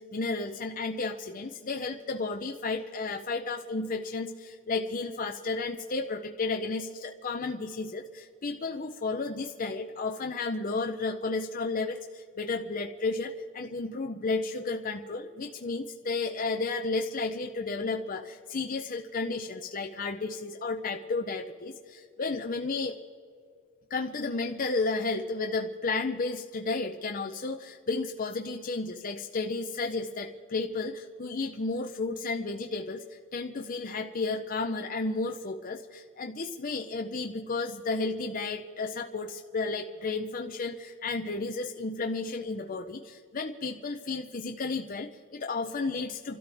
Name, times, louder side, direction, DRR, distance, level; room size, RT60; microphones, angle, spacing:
voice 1, 0.0-23.0 23.9-46.4, left 3 dB, 40° left, 3 dB, 0.6 m, -33 dB
29.5 x 13.0 x 3.4 m, 2.3 s
head